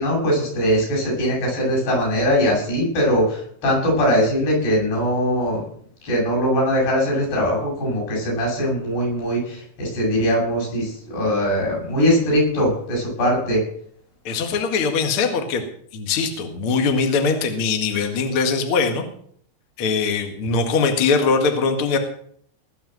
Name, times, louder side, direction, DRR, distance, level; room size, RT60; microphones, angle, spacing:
voice 1, 0.0-5.6 6.0-13.6, equal, 55° left, -2 dB, 10.0 m, -21 dB
voice 2, 14.2-15.6 15.9-19.0 19.8-22.0, left 4 dB, 70° left, 5 dB, 1.2 m, -21 dB
20.5 x 6.9 x 8.0 m, 0.62 s
omnidirectional pair, 5.8 m